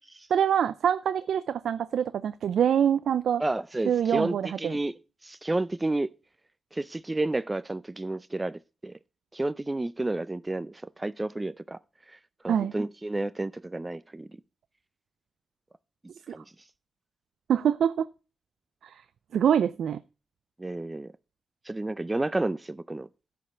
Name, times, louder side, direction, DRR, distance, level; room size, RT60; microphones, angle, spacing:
voice 1, 0.3-3.4 3.9-4.7 12.5-12.7 17.5-18.1 18.8-19.0 19.3-20.0, right 8 dB, 80° right, 0.4 m, -25 dB
voice 2, 3.4-4.9 5.2-6.1 6.7-9.0 9.3-11.8 12.1-12.2 12.4-14.4 16.3-16.5 20.6-21.1 21.6-23.1, right 2 dB, 20° right, 0.4 m, -31 dB
13.0 x 5.2 x 5.7 m
cardioid pair, 65°, 0 cm